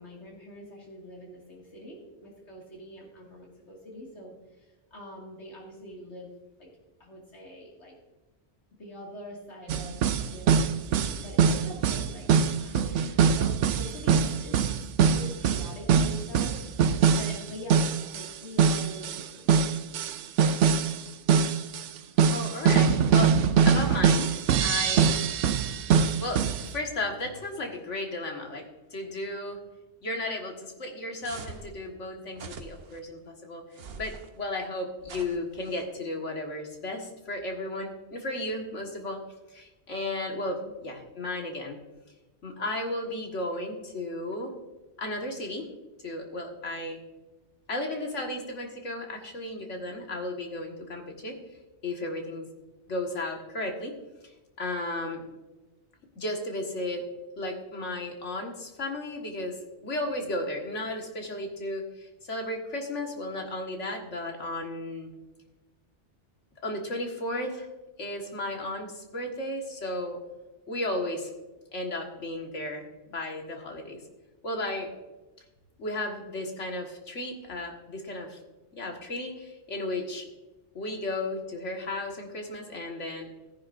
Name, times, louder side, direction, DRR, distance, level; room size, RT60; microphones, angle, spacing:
voice 1, 0.0-6.3 6.6-6.7 7.0-7.9 8.8-12.3 12.6-14.6 15.0-16.6 17.1-19.7, left 1 dB, 70° left, -3 dB, 2.5 m, -44 dB
sound 1, 9.7-18.3 18.6-21.0 21.3-26.7, right 7 dB, 85° right, 0.9 m, -23 dB
voice 2, 22.3-25.2 26.0-28.7 28.9-29.6 30.0-33.6 34.0-39.2 39.5-41.8 42.4-44.5 45.0-45.7 46.0-47.0 47.7-51.4 51.8-52.5 52.9-53.9 54.6-55.2 56.2-57.0 57.4-59.6 59.8-65.1 66.6-67.7 68.0-70.2 70.7-71.3 71.7-74.0 74.4-74.9 75.8-78.4 78.7-80.3 80.7-83.3, left 1 dB, 90° left, 1 dB, 2.0 m, -34 dB
sound 2, 31.2-31.7 32.3-33.0 33.7-34.3 35.0-35.9, right 5 dB, 60° right, 1.0 m, -43 dB
16.5 x 10.5 x 2.6 m, 1.1 s
omnidirectional pair, 1.2 m